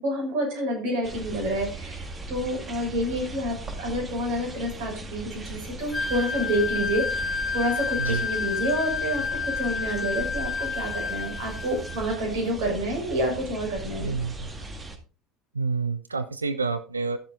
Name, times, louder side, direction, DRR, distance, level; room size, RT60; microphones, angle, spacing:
voice 1, 0.0-14.1, equal, 60° right, 0 dB, 6.5 m, -28 dB
sound 1, 1.0-15.0, right 2 dB, 25° right, 2.0 m, -38 dB
Wind instrument woodwind instrument, 5.9-12.1, left 5 dB, 30° left, 3.2 m, -30 dB
voice 2, 14.0-14.5 15.5-17.2, right 4 dB, 85° right, 11 dB, 0.6 m, -28 dB
12.5 x 7.2 x 3.9 m, 0.35 s
figure-of-eight pair, 65°, 0 cm